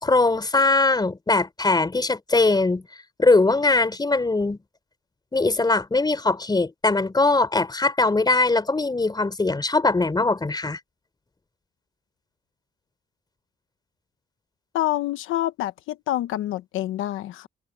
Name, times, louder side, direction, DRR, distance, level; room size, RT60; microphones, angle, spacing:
voice 1, 0.0-2.8 3.2-4.6 5.3-10.8, left 3 dB, 20° left, 4.2 m, -21 dB
voice 2, 14.7-17.5, left 14 dB, 90° left, 1.1 m, -27 dB
cardioid pair, 90°, 20 cm